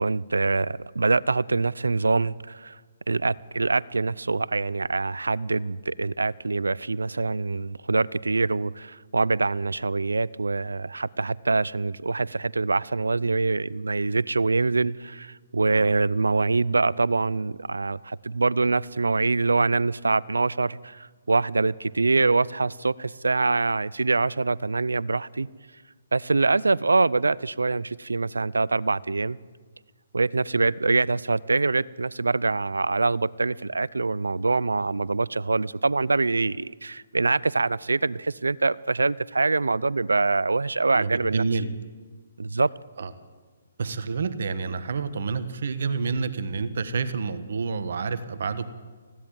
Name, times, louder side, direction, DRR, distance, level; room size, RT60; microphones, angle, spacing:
voice 1, 0.0-2.8 3.1-25.5 26.1-29.4 30.1-41.4 42.4-42.7, right 3 dB, 90° right, 0.6 m, -24 dB
voice 2, 40.9-41.7 43.0-43.1 43.8-48.7, right 5 dB, 65° right, 1.4 m, -29 dB
20.5 x 16.0 x 8.9 m
hypercardioid pair, 140°, 0 cm